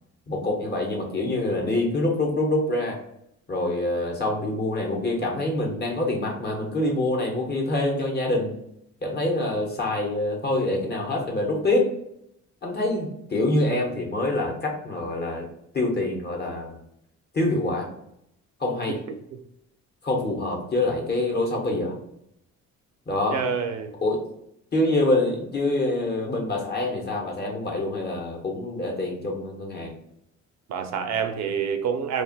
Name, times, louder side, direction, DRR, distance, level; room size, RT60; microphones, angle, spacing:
voice 1, 0.3-3.0 3.5-8.6 9.0-11.9 12.6-15.4 15.7-16.8 17.3-17.9 18.6-19.0 20.0-21.9 23.1-23.5 24.0-24.2 24.7-29.9, left 2 dB, 35° left, 0 dB, 1.0 m, -25 dB
voice 2, 23.3-23.9 30.7-32.2, right 6 dB, 65° right, 7 dB, 0.5 m, -27 dB
2.5 x 2.3 x 3.8 m, 0.78 s
cardioid pair, 90°, 30 cm